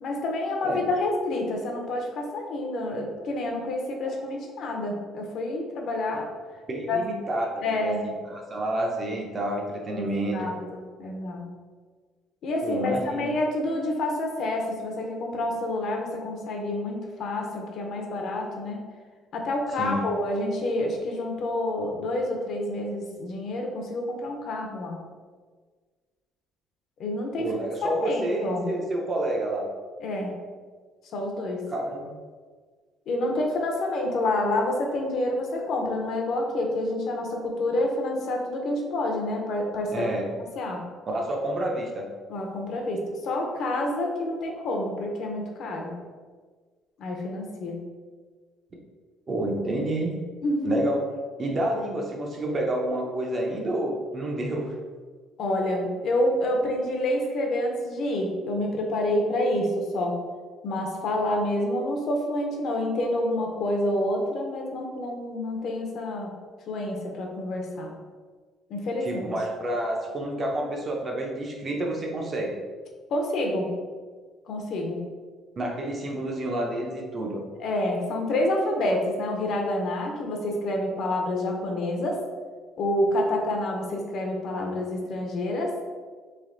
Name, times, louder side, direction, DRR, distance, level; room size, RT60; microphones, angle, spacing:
voice 1, 0.0-6.3 6.9-7.0 7.6-8.0 9.9-11.4 12.4-18.8 19.3-25.0 27.0-27.5 27.8-28.7 30.0-30.3 31.1-31.6 33.1-40.1 40.6-40.8 42.3-45.9 47.0-47.8 50.4-50.8 55.4-60.1 60.6-66.3 66.7-67.9 68.7-69.1 73.1-73.7 74.5-75.0 77.6-82.2 82.8-85.9, left 1 dB, 50° left, 1 dB, 0.6 m, -28 dB
voice 2, 6.7-10.5 12.6-13.2 19.8-20.1 27.4-29.7 31.7-32.1 39.9-40.3 41.1-42.1 49.3-50.1 50.6-51.1 51.4-54.7 69.0-72.6 75.6-77.4, right 1 dB, 25° right, 1 dB, 0.5 m, -29 dB
3.3 x 3.0 x 3.7 m, 1.5 s
cardioid pair, 175°, 0 cm